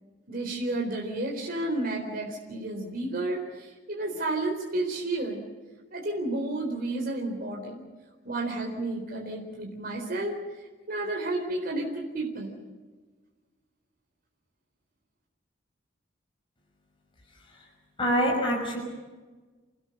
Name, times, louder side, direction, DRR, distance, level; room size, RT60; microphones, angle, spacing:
voice 1, 0.3-5.4 5.9-7.8 8.2-10.3 10.9-12.6, right 2 dB, 50° right, 0 dB, 4.1 m, -31 dB
voice 2, 18.0-18.8, equal, 30° left, -2 dB, 5.8 m, -26 dB
29.0 x 20.0 x 6.6 m, 1.3 s
head